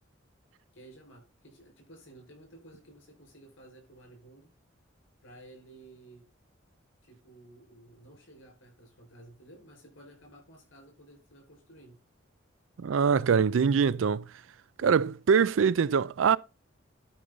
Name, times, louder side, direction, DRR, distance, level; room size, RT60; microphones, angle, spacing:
voice 1, 0.7-4.5 5.2-6.2 7.0-12.0, right 1 dB, 85° left, 5.5 m, -54 dB
voice 2, 12.8-14.3 14.8-16.4, right 6 dB, 85° right, 0.4 m, -23 dB
11.5 x 5.3 x 4.0 m
head